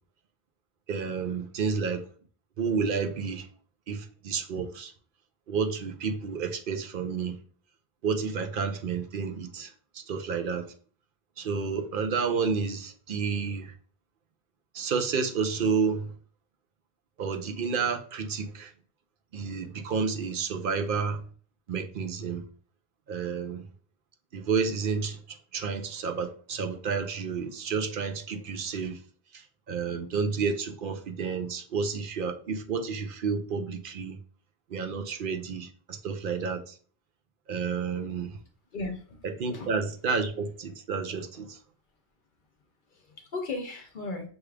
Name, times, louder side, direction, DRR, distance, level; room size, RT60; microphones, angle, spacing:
voice 1, 0.9-2.1 2.6-3.5 3.9-4.9 5.5-7.4 8.0-10.7 11.4-13.7 14.7-16.1 17.2-18.7 19.3-21.2 21.7-22.4 23.1-23.7 24.3-29.0 29.3-34.2 34.7-36.8 37.5-38.4 39.4-41.6, right 5 dB, 60° right, 0.7 m, -30 dB
voice 2, 38.7-39.2 39.5-39.7 42.9-44.3, left 2 dB, 55° left, 0.7 m, -36 dB
6.1 x 2.4 x 3.2 m
omnidirectional pair, 1.1 m